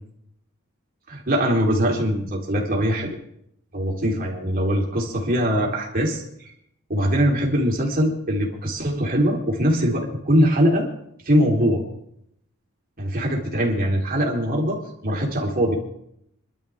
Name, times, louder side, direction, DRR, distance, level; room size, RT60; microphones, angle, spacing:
voice 1, 1.1-3.2 3.7-6.2 6.9-10.9 11.3-11.8 13.0-15.7, equal, 45° right, -1 dB, 3.7 m, -22 dB
26.5 x 12.0 x 3.6 m, 0.75 s
head